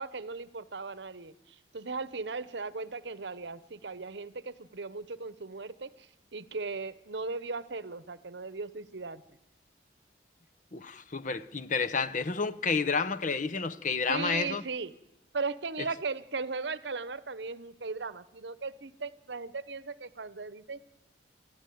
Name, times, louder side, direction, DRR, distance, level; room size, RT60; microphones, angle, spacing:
voice 1, 0.0-9.2 14.1-14.9 15.3-20.8, right 4 dB, 65° right, 0.9 m, -37 dB
voice 2, 10.7-14.6, left 4 dB, 45° left, 0.8 m, -30 dB
28.5 x 13.5 x 9.4 m
head